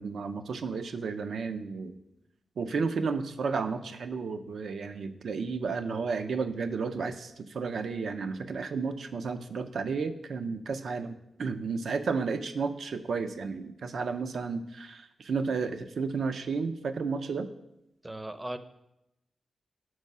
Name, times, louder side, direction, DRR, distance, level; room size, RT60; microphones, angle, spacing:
voice 1, 0.0-2.0 2.6-17.5, right 4 dB, 75° right, 9 dB, 0.5 m, -32 dB
voice 2, 18.0-18.6, right 1 dB, 20° right, 11 dB, 0.5 m, -37 dB
6.1 x 4.6 x 5.3 m, 0.86 s
cardioid pair, 70°, 0 cm